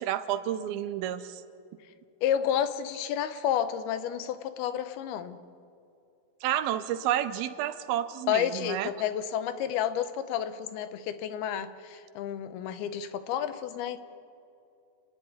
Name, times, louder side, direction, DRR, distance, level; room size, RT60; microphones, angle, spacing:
voice 1, 0.0-1.4 6.4-8.9, right 11 dB, 85° right, 12 dB, 2.6 m, -30 dB
voice 2, 2.2-5.4 8.3-14.0, left 9 dB, 85° left, 11 dB, 2.9 m, -30 dB
30.0 x 11.0 x 9.5 m, 2.6 s
omnidirectional pair, 4.3 m